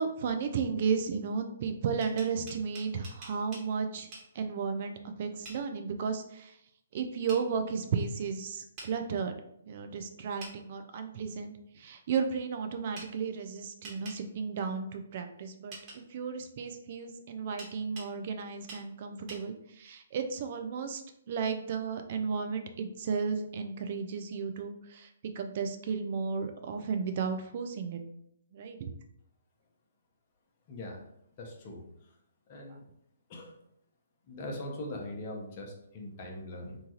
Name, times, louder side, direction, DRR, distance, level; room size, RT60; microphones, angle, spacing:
voice 1, 0.0-6.6 6.9-9.4 9.7-21.0 21.3-25.1 25.3-28.0 28.5-28.9, right 5 dB, 45° right, 6 dB, 0.3 m, -34 dB
sound 1, 1.8-3.7 4.1-4.3 5.4-5.6 7.3-7.4 8.8-8.9 10.4-10.6 12.9-13.1 13.8-14.2 15.7-16.0 17.6-18.1 18.7-18.8 19.3-19.4, right 2 dB, 30° right, 1.1 m, -46 dB
voice 2, 30.7-31.0 31.4-31.8 32.5-32.8 33.3-33.5 34.3-36.8, left 1 dB, 40° left, 0 dB, 0.7 m, -41 dB
3.0 x 2.2 x 2.8 m, 0.75 s
figure-of-eight pair, 130°, 0 cm